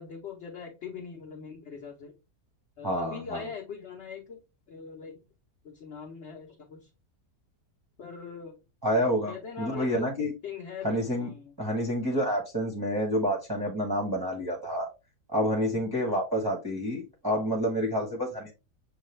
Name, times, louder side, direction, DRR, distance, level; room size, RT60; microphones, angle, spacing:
voice 1, 0.0-2.1 2.8-4.4 4.7-5.2 5.6-6.9 8.0-8.6 9.3-10.1 10.4-11.5, left 6 dB, 50° left, 1.0 m, -41 dB
voice 2, 2.8-3.5 8.8-10.3 10.8-11.3 11.6-14.9 15.3-18.5, equal, 20° right, 0.8 m, -28 dB
6.8 x 2.4 x 3.1 m
omnidirectional pair, 1.6 m